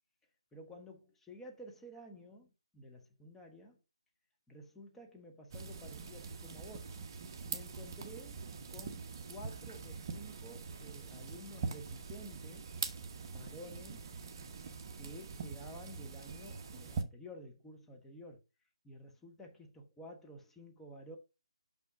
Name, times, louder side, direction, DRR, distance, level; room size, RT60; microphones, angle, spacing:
voice 1, 0.5-3.8 4.5-7.0 7.5-8.4 8.7-12.7 13.3-14.1 15.0-18.4 18.8-21.2, equal, 5° left, 1.2 m, -52 dB
sound 1, 5.5-17.0, right 5 dB, 35° right, 1.1 m, -43 dB
6.2 x 5.9 x 4.9 m
figure-of-eight pair, 155°, 3 cm